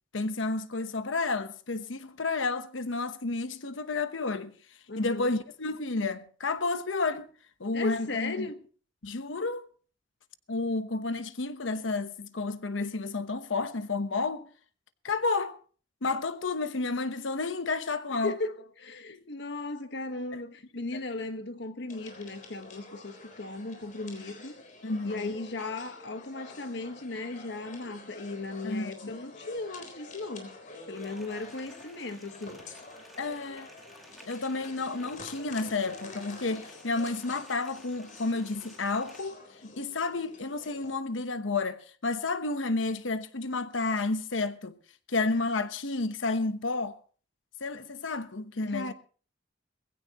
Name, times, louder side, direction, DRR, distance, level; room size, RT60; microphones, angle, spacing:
voice 1, 0.1-4.5 5.0-7.3 7.6-8.5 9.0-9.7 10.5-14.5 15.0-15.6 16.0-18.4 19.1-19.2 20.3-20.4 20.9-21.0 24.8-25.4 28.6-29.2 33.2-33.7 34.3-44.8 45.1-47.0 47.6-48.9, left 3 dB, 90° left, 1.0 m, -31 dB
voice 2, 4.9-5.3 7.7-8.6 18.2-24.6 25.0-30.6 30.9-32.8 48.6-48.9, left 3 dB, 65° left, 1.3 m, -37 dB
sound 1, 21.9-41.0, left 3 dB, 45° left, 3.8 m, -48 dB
sound 2, 30.9-39.3, equal, ahead, 2.2 m, -55 dB
20.5 x 16.0 x 3.0 m
head